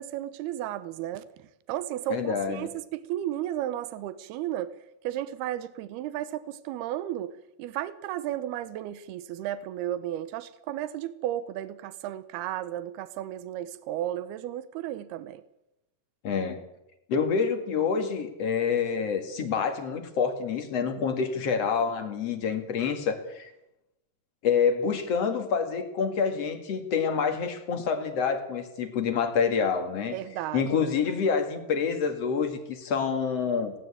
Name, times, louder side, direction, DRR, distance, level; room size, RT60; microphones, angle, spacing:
voice 1, 0.0-4.8 5.0-15.4 30.1-30.9, right 12 dB, 90° right, 14 dB, 2.9 m, -34 dB
voice 2, 2.1-2.7 16.2-16.6 17.1-23.5 24.4-30.1 30.5-33.7, left 6 dB, 45° left, 7 dB, 2.9 m, -27 dB
19.5 x 17.5 x 8.6 m, 0.89 s
omnidirectional pair, 4.4 m